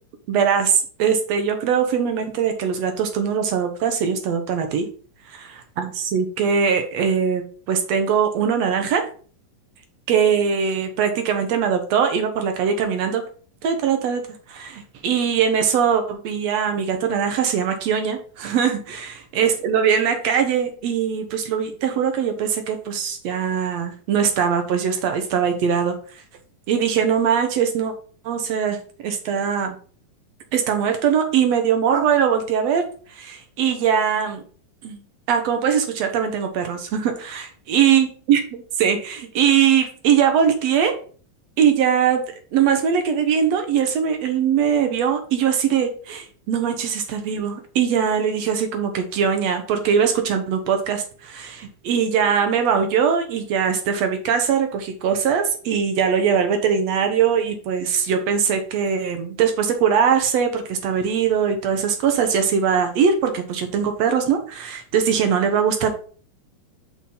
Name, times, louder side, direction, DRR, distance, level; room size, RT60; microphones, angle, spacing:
voice 1, 0.3-4.9 5.3-5.4 5.8-9.0 10.1-13.2 13.6-26.0 26.7-27.9 28.3-28.8 29.0-29.8 30.5-32.8 33.1-34.4 34.8-35.0 35.3-41.0 41.6-65.9, right 7 dB, 65° right, 6 dB, 1.8 m, -21 dB
6.2 x 4.5 x 5.4 m, 0.42 s
omnidirectional pair, 3.7 m